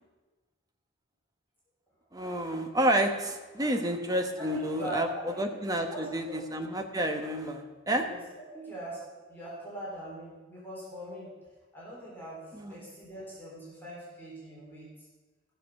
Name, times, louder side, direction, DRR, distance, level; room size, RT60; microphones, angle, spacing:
voice 1, 2.1-5.1 5.4-8.1 12.5-12.8, right 1 dB, 20° right, 4 dB, 1.2 m, -30 dB
voice 2, 4.4-5.4 5.9-6.4 8.0-8.2 8.5-9.0 9.3-11.3 11.7-14.9, right 1 dB, 10° left, -7 dB, 3.7 m, -41 dB
15.0 x 6.7 x 6.5 m, 1.2 s
head